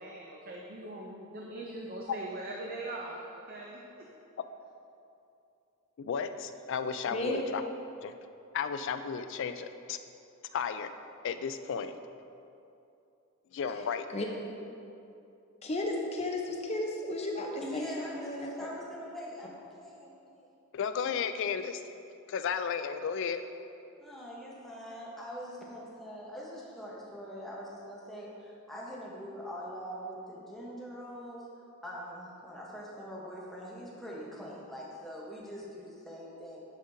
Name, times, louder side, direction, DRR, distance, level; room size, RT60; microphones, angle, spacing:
voice 1, 0.0-4.0, right 2 dB, 45° right, -1 dB, 0.5 m, -41 dB
voice 2, 6.0-7.6 8.0-8.1 8.5-10.0 10.5-10.9 11.2-12.0 13.5-14.1 20.7-21.8 22.3-23.4, left 6 dB, 60° left, 10 dB, 0.3 m, -33 dB
voice 3, 15.6-18.7, left 1 dB, 30° left, 1 dB, 0.7 m, -34 dB
voice 4, 17.6-20.5 24.0-31.5 31.8-36.6, equal, ahead, -5 dB, 1.0 m, -43 dB
10.5 x 5.0 x 2.7 m, 2.7 s
head